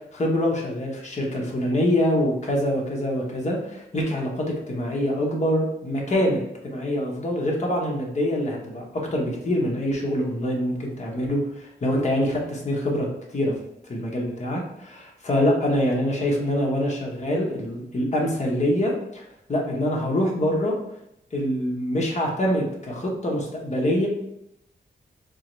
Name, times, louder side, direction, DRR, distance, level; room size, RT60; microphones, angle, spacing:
voice 1, 0.1-13.5 13.9-19.2 19.5-20.7 21.3-24.1, equal, 40° left, -1 dB, 1.0 m, -25 dB
3.9 x 2.9 x 3.1 m, 0.81 s
wide cardioid pair, 120°, 17 cm